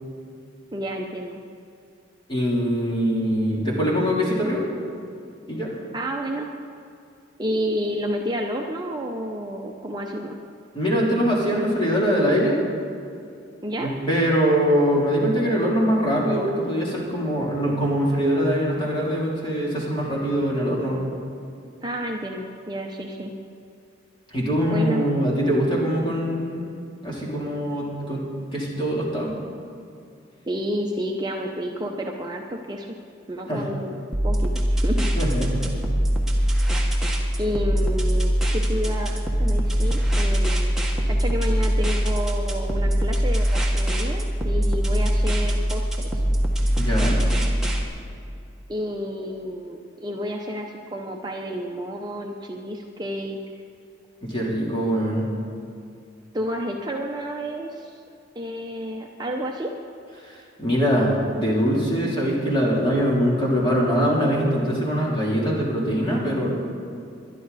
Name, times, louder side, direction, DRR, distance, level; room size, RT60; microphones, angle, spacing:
voice 1, 0.7-1.4 5.9-6.5 7.4-10.4 13.6-13.9 21.8-23.3 24.7-25.1 30.5-32.9 33.3-33.9 34.2-35.1 37.4-40.7 41.1-46.1 48.7-53.4 56.3-58.0 58.3-59.7, equal, 20° right, 1 dB, 0.7 m, -30 dB
voice 2, 2.3-4.7 5.5-5.7 10.7-12.6 13.8-21.1 24.3-26.7 27.0-28.3 28.5-29.3 33.5-33.6 35.1-35.7 46.8-47.2 54.2-55.3 60.2-66.5, equal, 25° left, -5 dB, 3.3 m, -23 dB
sound 1, 34.1-47.8, equal, 5° right, 1.5 m, -22 dB
21.0 x 11.5 x 4.1 m, 2.5 s
head